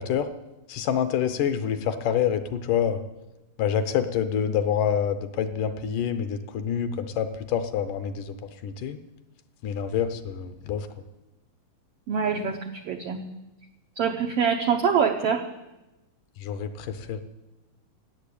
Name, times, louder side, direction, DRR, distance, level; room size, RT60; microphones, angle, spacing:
voice 1, 0.7-3.0 3.6-8.4 8.6-9.0 9.6-10.9 16.4-17.2, left 8 dB, 75° left, 10 dB, 2.3 m, -27 dB
voice 2, 12.1-13.2 14.0-15.4, right 6 dB, 85° right, 4 dB, 1.3 m, -24 dB
17.5 x 7.9 x 8.5 m, 1.0 s
omnidirectional pair, 3.9 m